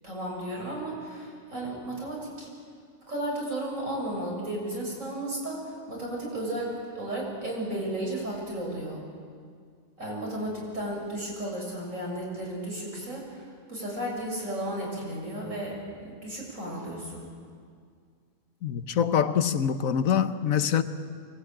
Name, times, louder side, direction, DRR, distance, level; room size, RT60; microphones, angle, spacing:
voice 1, 0.0-2.5 3.1-6.7 6.9-9.0 10.0-15.8 16.0-17.2, right 1 dB, 75° right, 7.3 m, -34 dB
voice 2, 18.6-20.8, left 8 dB, 85° left, 1.4 m, -24 dB
24.0 x 20.0 x 8.9 m
omnidirectional pair, 1.4 m